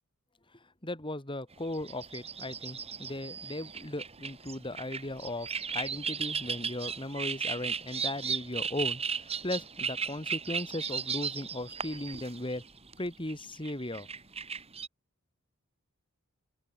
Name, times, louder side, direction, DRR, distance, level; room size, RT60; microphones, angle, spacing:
voice 1, 0.8-12.6 13.0-14.1, left 1 dB, 25° left, 3.8 m, -37 dB
sound 1, 1.5-14.9, right 6 dB, 30° right, 7.0 m, -36 dB
open air
head